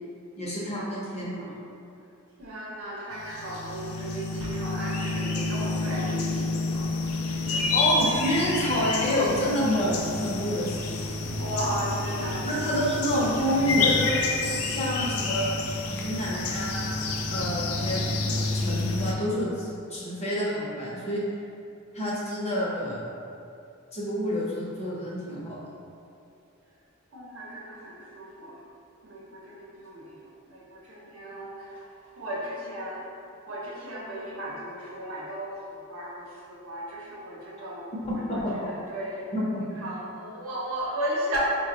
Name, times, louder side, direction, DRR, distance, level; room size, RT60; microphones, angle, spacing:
voice 1, 0.4-1.5 7.7-11.0 12.4-14.3 14.7-15.6 15.9-17.0 17.3-21.2 21.9-23.0 23.9-25.6 38.0-38.7 39.3-39.8, equal, 30° left, -6 dB, 0.7 m, -28 dB
voice 2, 2.4-6.8 7.4-7.7 11.3-12.8 27.1-28.6 29.0-31.9 32.1-33.1 33.5-35.6 35.9-37.9 38.1-39.3 39.8-41.4, right 1 dB, 75° right, -5 dB, 0.7 m, -35 dB
sound 1, 3.1-19.1, left 3 dB, 80° left, 0.4 m, -29 dB
4.2 x 2.2 x 2.8 m, 2.5 s
head